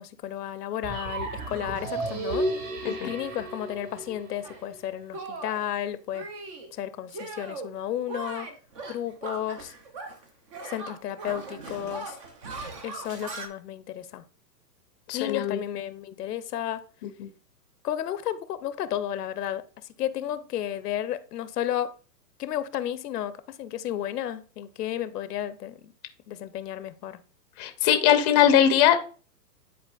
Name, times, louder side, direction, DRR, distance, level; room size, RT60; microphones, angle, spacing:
voice 1, 0.0-2.5 3.0-6.3 6.7-8.5 8.9-9.7 10.6-12.2 12.8-14.2 15.1-16.8 17.8-19.6 20.0-21.9 22.4-25.9 26.3-27.2, left 11 dB, 70° left, 0.7 m, -32 dB
sound 1, 0.8-4.8, right 2 dB, 50° right, 2.8 m, -33 dB
Shatter, 4.4-4.6 5.1-5.7 6.1-6.7 7.1-7.7 8.0-10.2 10.5-13.5, right 3 dB, 20° right, 0.4 m, -39 dB
voice 2, 15.1-15.6 17.2-17.3 27.6-29.0, left 10 dB, 25° left, 0.6 m, -21 dB
10.0 x 4.2 x 2.3 m
hypercardioid pair, 135°, 50 cm